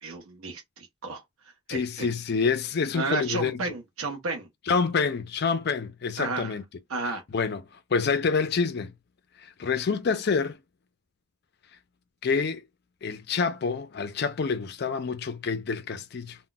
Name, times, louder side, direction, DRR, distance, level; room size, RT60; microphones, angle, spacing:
voice 1, 0.0-1.2 1.7-2.1 2.9-4.5 6.2-6.5 6.9-7.2, right 3 dB, 75° right, 0.7 m, -32 dB
voice 2, 1.7-3.6 4.7-6.6 7.0-7.6 7.9-8.9 9.6-10.6 12.2-12.6 13.0-16.4, left 5 dB, 50° left, 0.4 m, -27 dB
2.2 x 2.1 x 3.8 m
head